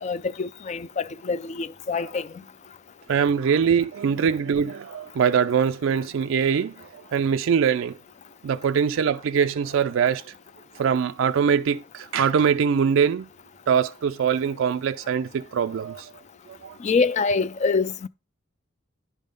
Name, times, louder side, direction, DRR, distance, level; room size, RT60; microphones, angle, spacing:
voice 1, 0.0-2.3 16.8-18.1, left 4 dB, 35° left, 0.3 m, -25 dB
voice 2, 3.1-8.0 8.4-10.3 10.8-13.3 13.7-16.1 16.5-16.8, right 7 dB, 65° right, 0.3 m, -23 dB
10.0 x 3.7 x 5.2 m
head